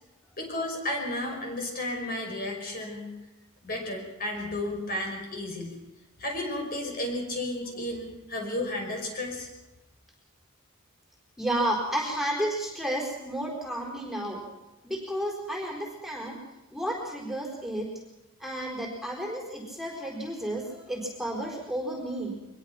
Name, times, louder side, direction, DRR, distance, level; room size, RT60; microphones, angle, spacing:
voice 1, 0.4-3.1 3.6-5.8 6.2-9.5, left 1 dB, 45° left, 2 dB, 5.6 m, -33 dB
voice 2, 11.4-14.4 14.8-16.4 16.7-17.9 18.4-22.3, right 1 dB, ahead, 0 dB, 4.5 m, -32 dB
23.5 x 21.5 x 6.0 m, 0.99 s
head